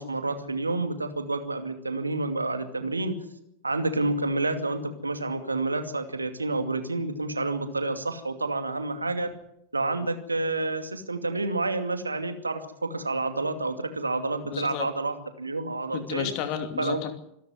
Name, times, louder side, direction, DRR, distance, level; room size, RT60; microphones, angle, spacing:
voice 1, 0.0-3.2 3.6-9.3 9.7-16.3 16.8-17.0, right 2 dB, 80° right, 7 dB, 2.4 m, -29 dB
voice 2, 14.4-14.9 15.9-17.1, left 9 dB, 40° left, 7 dB, 2.8 m, -32 dB
25.5 x 12.5 x 9.4 m, 0.80 s
figure-of-eight pair, 90°, 0 cm